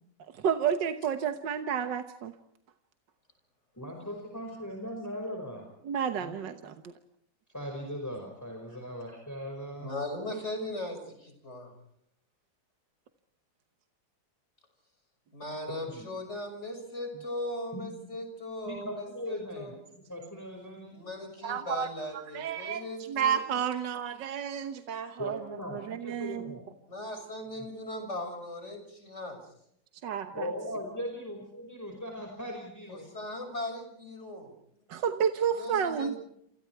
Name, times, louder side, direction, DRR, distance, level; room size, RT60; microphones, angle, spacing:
voice 1, 0.3-2.3 5.8-6.7 21.4-25.4 25.7-26.6 30.0-30.5 34.9-36.1, right 8 dB, 75° right, 8 dB, 1.8 m, -31 dB
voice 2, 3.8-5.6 6.2-6.3 7.5-9.9 15.9-16.1 17.7-17.8 18.7-19.7 20.1-21.0 25.2-26.6 27.6-27.7 30.3-33.0, equal, 10° left, 2 dB, 5.4 m, -39 dB
voice 3, 9.8-11.7 15.3-19.7 20.9-23.4 26.9-29.4 32.9-33.8 34.1-34.5 35.5-36.2, left 1 dB, 40° left, 6 dB, 6.6 m, -38 dB
29.0 x 28.5 x 4.7 m, 0.73 s
omnidirectional pair, 2.0 m